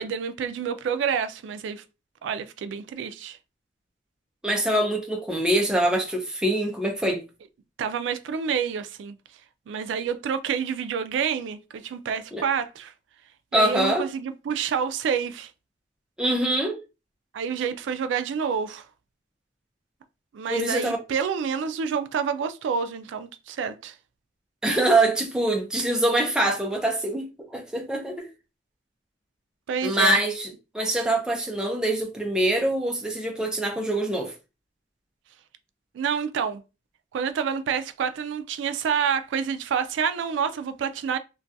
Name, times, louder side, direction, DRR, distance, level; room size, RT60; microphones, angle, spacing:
voice 1, 0.0-1.8 2.2-3.4 7.8-9.2 9.7-12.9 13.5-15.5 17.3-18.9 20.3-23.9 29.7-30.2 35.9-36.6 37.1-41.2, right 7 dB, 80° right, 0.3 m, -28 dB
voice 2, 4.4-7.2 12.3-12.4 13.5-14.1 16.2-16.8 20.5-21.0 24.6-28.3 29.8-30.5 30.7-34.3, right 1 dB, 5° right, 0.4 m, -24 dB
2.3 x 2.2 x 2.6 m
head